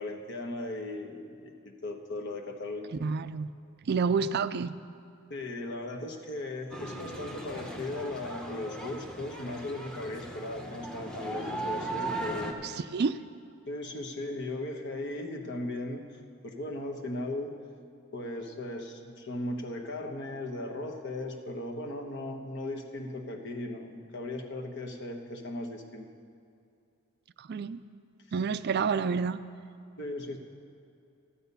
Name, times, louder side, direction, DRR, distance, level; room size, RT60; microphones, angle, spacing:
voice 1, 0.0-2.9 5.3-12.8 13.7-16.0 16.4-17.5 18.1-26.1 30.0-30.4, left 2 dB, 55° left, 3 dB, 1.3 m, -37 dB
voice 2, 3.0-3.5 3.8-4.7 12.6-13.2 27.4-27.8 28.3-29.4, right 5 dB, 50° right, 13 dB, 0.4 m, -29 dB
sound 1, 6.7-12.5, right 2 dB, 5° left, 0.9 m, -38 dB
13.0 x 10.5 x 5.5 m, 2.5 s
head